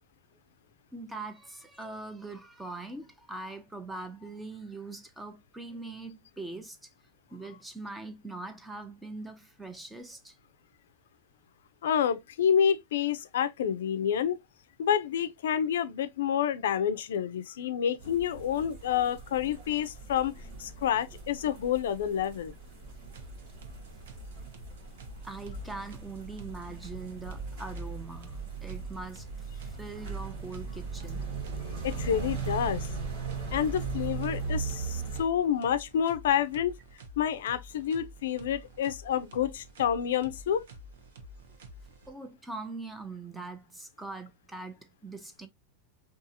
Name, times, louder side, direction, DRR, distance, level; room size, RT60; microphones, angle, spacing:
voice 1, 0.9-6.8 7.3-10.4 25.2-29.3 29.6-31.3 31.6-31.8 42.1-45.5, right 3 dB, 5° right, 0.4 m, -42 dB
voice 2, 11.8-14.4 14.8-20.3 20.6-22.5 31.8-32.9 33.5-36.7 37.2-40.7, left 9 dB, 90° left, 0.3 m, -28 dB
sound 1, 18.0-35.2, right 4 dB, 55° right, 1.1 m, -38 dB
sound 2, 23.0-42.4, equal, 90° right, 0.6 m, -49 dB
2.7 x 2.3 x 2.6 m
supercardioid pair, 165°, 0 cm